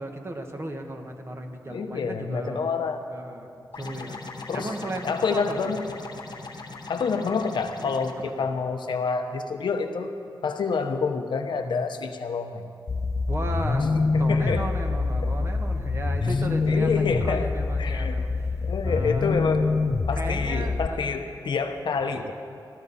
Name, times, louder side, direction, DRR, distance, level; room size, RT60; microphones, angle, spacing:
voice 1, 0.0-2.8 3.1-3.5 3.8-4.2 4.5-5.7 7.8-7.9 8.4-8.5 13.3-13.9 14.2-19.3 20.1-21.1 22.2-22.3, right 1 dB, 35° right, 3 dB, 1.5 m, -35 dB
voice 2, 1.7-3.0 4.5-4.7 5.0-5.8 6.9-10.1 10.4-12.7 13.9-14.7 15.2-15.3 16.2-16.3 16.6-17.5 17.8-18.2 18.6-19.7 20.1-22.3, left 5 dB, 75° left, 7 dB, 0.9 m, -28 dB
sound 1, 3.7-8.1, left 3 dB, 60° left, 1.2 m, -39 dB
sound 2, 12.9-20.9, left 3 dB, 40° left, 0.5 m, -25 dB
18.5 x 13.5 x 4.2 m, 2.6 s
cardioid pair, 75°, 8 cm